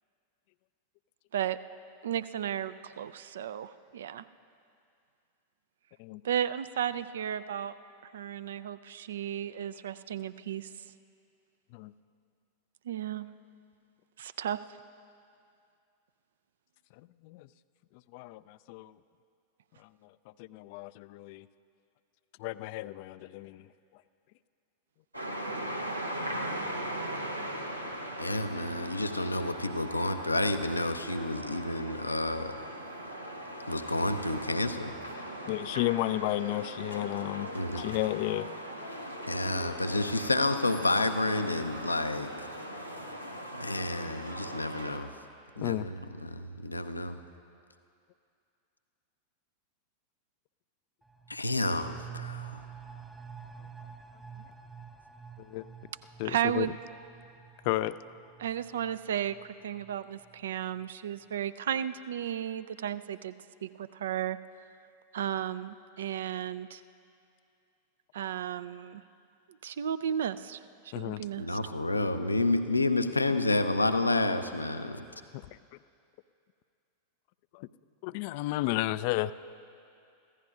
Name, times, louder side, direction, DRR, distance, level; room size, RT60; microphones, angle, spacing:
voice 1, 2.0-4.2 6.2-7.7 8.0-10.9 12.8-13.3 14.2-14.6 56.2-56.8 58.4-63.3 63.6-64.4 65.1-66.8 68.1-69.0 69.6-71.6, right 10 dB, 60° right, 15 dB, 0.4 m, -34 dB
voice 2, 18.1-18.9 19.8-19.9 20.4-21.5 22.4-23.7 26.4-26.5 35.5-38.5 45.6-45.9 55.4-55.6 56.2-56.7 57.6-58.0 70.9-71.3 75.3-75.6 77.5-77.7 78.0-79.3, left 17 dB, 45° left, 16 dB, 0.3 m, -33 dB
sound 1, 25.1-45.0, right 1 dB, 85° right, 0.9 m, -39 dB
voice 3, 28.2-32.6 33.7-34.9 37.5-37.8 39.3-42.5 43.5-45.1 45.6-47.2 51.3-52.6 71.4-75.0, left 2 dB, 85° left, 9 dB, 0.6 m, -30 dB
sound 2, 51.0-60.4 60.7-60.8, right 7 dB, 5° right, 0.6 m, -48 dB
25.5 x 15.5 x 2.5 m, 2.4 s
figure-of-eight pair, 90°, 0 cm